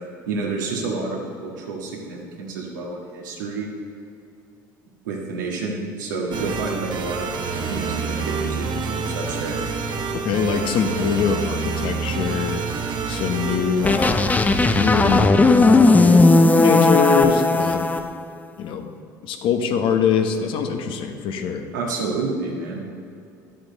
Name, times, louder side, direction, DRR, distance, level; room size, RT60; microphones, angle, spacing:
voice 1, 0.3-3.7 5.0-7.3 7.7-9.5 21.7-22.8, right 3 dB, 85° right, -1 dB, 1.7 m, -29 dB
sound 1, 6.3-15.3, right 5 dB, 45° right, 1.1 m, -28 dB
voice 2, 10.1-12.6 13.1-14.2 14.7-15.9 16.6-17.9 18.6-18.9 19.2-21.7, left 6 dB, 60° left, 6 dB, 1.0 m, -23 dB
sound 2, 13.8-18.0, left 3 dB, 15° left, 0.5 m, -16 dB
11.0 x 7.8 x 4.0 m, 2.6 s
hypercardioid pair, 75°, 10 cm